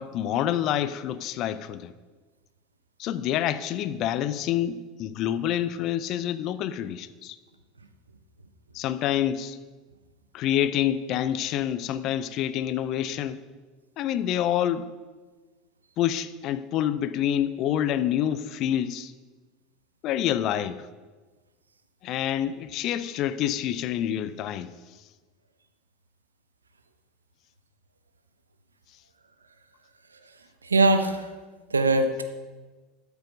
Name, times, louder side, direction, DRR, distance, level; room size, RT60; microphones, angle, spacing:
voice 1, 0.0-1.9 3.0-7.4 8.7-9.6 10.3-13.4 14.0-14.9 16.0-19.1 20.0-20.9 22.0-24.7, left 11 dB, 50° left, 0.6 m, -27 dB
voice 2, 30.6-31.3 31.7-32.2, right 2 dB, 85° right, 0.8 m, -21 dB
12.5 x 7.1 x 5.3 m
figure-of-eight pair, 75°, 0 cm